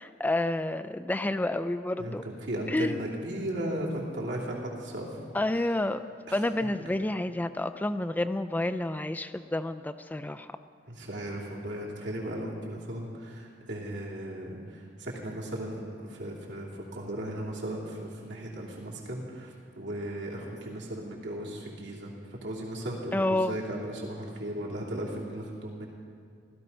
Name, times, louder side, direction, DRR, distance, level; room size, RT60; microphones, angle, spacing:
voice 1, 0.0-2.2 2.7-3.0 5.3-6.0 6.3-10.5 23.1-23.6, left 1 dB, 10° left, 10 dB, 0.3 m, -29 dB
voice 2, 2.0-5.4 6.3-6.4 10.9-22.1 22.4-25.9, right 1 dB, 90° right, -4 dB, 2.9 m, -36 dB
16.5 x 13.5 x 5.5 m, 2.3 s
head